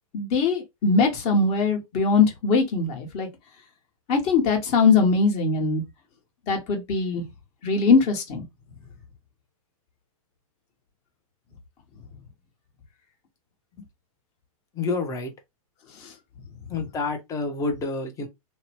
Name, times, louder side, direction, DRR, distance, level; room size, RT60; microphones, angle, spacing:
voice 1, 0.1-3.3 4.1-5.8 6.5-7.2 7.6-8.4 16.0-16.1, left 4 dB, 35° left, 1.2 m, -21 dB
voice 2, 14.7-15.3 16.7-18.3, left 3 dB, 15° left, 0.6 m, -28 dB
2.8 x 2.0 x 2.9 m
hypercardioid pair, 135°, 19 cm